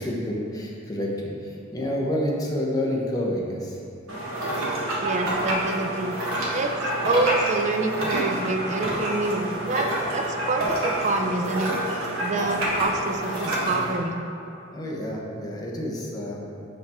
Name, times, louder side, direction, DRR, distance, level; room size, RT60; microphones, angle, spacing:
voice 1, 0.0-3.8 13.6-13.9 14.7-16.5, left 1 dB, 20° left, -3 dB, 0.9 m, -29 dB
sound 1, 4.1-14.0, right 1 dB, 85° right, 1.4 m, -27 dB
voice 2, 5.0-6.1 6.5-9.9 10.1-14.2, right 2 dB, 35° right, 4 dB, 0.4 m, -27 dB
6.7 x 5.4 x 3.5 m, 2.8 s
head